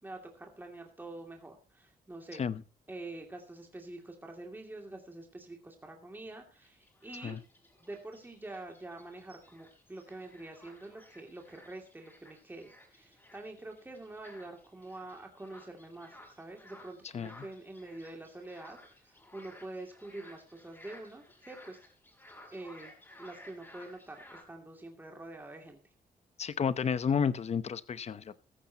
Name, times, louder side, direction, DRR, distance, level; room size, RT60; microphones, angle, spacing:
voice 1, 0.0-2.4 2.9-7.4 7.8-21.9 22.5-22.9 23.2-25.8, right 2 dB, 10° right, 2.5 m, -46 dB
sound 1, 6.6-24.4, left 1 dB, 15° left, 5.5 m, -56 dB
voice 2, 26.4-28.4, left 7 dB, 45° left, 0.8 m, -31 dB
15.0 x 14.5 x 2.9 m
cardioid pair, 130°, 16 cm